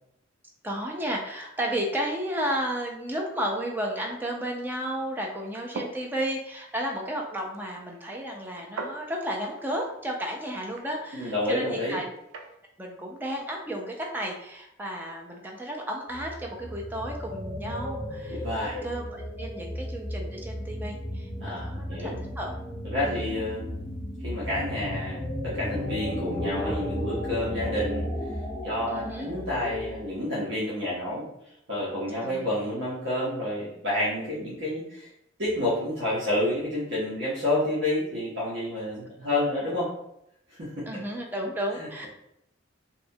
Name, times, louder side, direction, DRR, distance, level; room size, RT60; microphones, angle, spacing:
voice 1, 0.6-12.1 12.8-22.5 23.0-23.2 28.9-29.3 32.2-32.5 40.9-42.1, right 1 dB, 10° right, 0 dB, 0.3 m, -33 dB
sound 1, 5.4-12.6, right 3 dB, 85° right, 0.4 m, -44 dB
voice 2, 11.1-12.0 18.3-18.8 21.4-22.2 22.8-23.9 24.2-28.1 28.6-31.3 31.7-35.1 35.4-39.9 40.5-40.8 41.8-42.1, left 1 dB, 60° right, -9 dB, 0.7 m, -29 dB
sound 2, 16.1-30.3, left 1 dB, 40° left, 0.5 m, -34 dB
2.8 x 2.1 x 2.6 m, 0.80 s
head